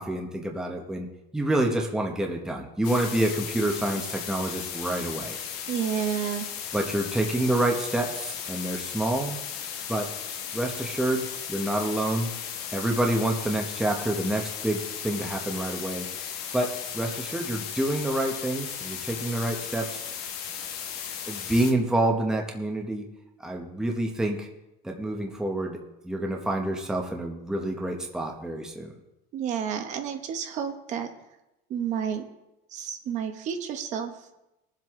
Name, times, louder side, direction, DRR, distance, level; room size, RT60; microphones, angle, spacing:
voice 1, 0.0-5.4 6.7-9.4 9.9-10.1 10.5-12.4 12.7-16.3 16.5-20.0 21.3-23.1 23.4-24.5 24.8-28.9, right 1 dB, 5° right, 1 dB, 0.9 m, -28 dB
sound 1, 2.8-21.7, left 8 dB, 85° left, 1.7 m, -36 dB
voice 2, 5.7-6.5 29.3-31.1 31.7-32.2 32.7-34.3, right 8 dB, 40° right, 6 dB, 1.0 m, -30 dB
20.5 x 7.6 x 3.7 m, 0.92 s
cardioid pair, 175°, 19 cm